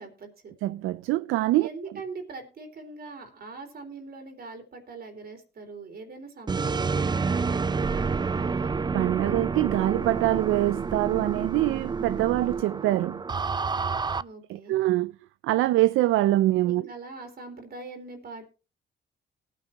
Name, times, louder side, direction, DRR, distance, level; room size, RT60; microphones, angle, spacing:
voice 1, 0.0-0.5 1.6-8.7 14.2-14.8 16.7-18.5, right 3 dB, 50° right, 3.5 m, -42 dB
voice 2, 0.6-1.7 8.9-13.2 14.5-15.1 15.4-16.8, right 16 dB, 90° right, 0.5 m, -24 dB
sound 1, 6.5-14.2, right 5 dB, 20° right, 0.5 m, -29 dB
19.0 x 9.3 x 2.9 m
cardioid pair, 90°, 20 cm